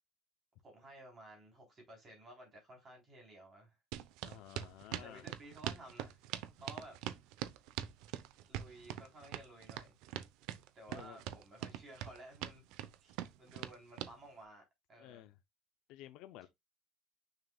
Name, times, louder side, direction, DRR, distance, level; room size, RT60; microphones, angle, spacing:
voice 1, 0.6-3.8 5.0-6.2 6.6-7.0 8.5-10.0 10.8-12.7 13.0-14.6 14.9-15.3, right 1 dB, 25° right, 3.6 m, -55 dB
sound 1, 3.9-14.1, right 12 dB, 75° right, 0.7 m, -43 dB
voice 2, 4.2-5.3 10.9-11.2 13.5-13.7 15.0-15.4 15.9-16.5, left 14 dB, 65° left, 0.6 m, -53 dB
7.0 x 6.4 x 2.3 m
cardioid pair, 175°, 0 cm